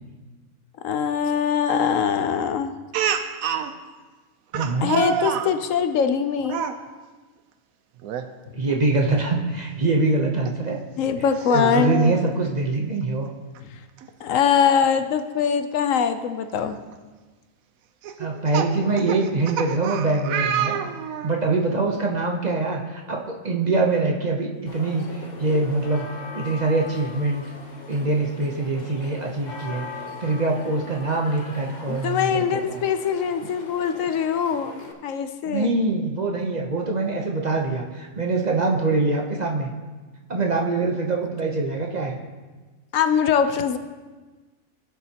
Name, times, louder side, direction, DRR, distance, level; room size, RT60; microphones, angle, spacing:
voice 1, 0.8-2.7 4.8-6.7 11.0-12.2 13.7-13.8 14.2-16.8 31.9-35.7 42.9-43.8, left 7 dB, 70° left, 9 dB, 1.0 m, -22 dB
Speech, 2.9-3.7 4.5-5.5 6.4-6.8 8.0-8.3 8.7-8.8 10.5-10.6 11.4-12.2 13.6-13.7 14.0-14.1 16.0-16.1 16.7-16.9 18.0-21.4, right 8 dB, 85° right, 1.1 m, -27 dB
voice 2, 4.5-5.0 8.5-10.8 11.5-13.3 18.2-20.8 21.2-26.1 26.3-27.4 27.9-29.9 30.2-32.8 35.5-39.7 40.3-42.2, right 3 dB, 40° right, 1 dB, 0.7 m, -24 dB
sound 1, 24.7-34.9, left 3 dB, 35° left, 0.9 m, -40 dB
16.5 x 7.1 x 2.9 m, 1.3 s
omnidirectional pair, 1.4 m